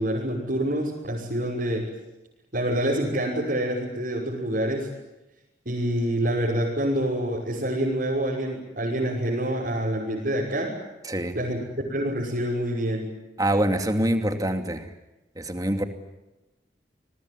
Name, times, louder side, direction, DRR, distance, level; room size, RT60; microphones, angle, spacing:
voice 1, 0.0-1.9 2.5-4.9 5.6-10.7 11.3-13.1, right 1 dB, 55° right, -5 dB, 6.2 m, -27 dB
voice 2, 11.0-11.4 13.4-14.9 15.4-15.8, right 1 dB, 20° right, 6 dB, 2.7 m, -25 dB
28.5 x 21.5 x 9.8 m, 1.0 s
head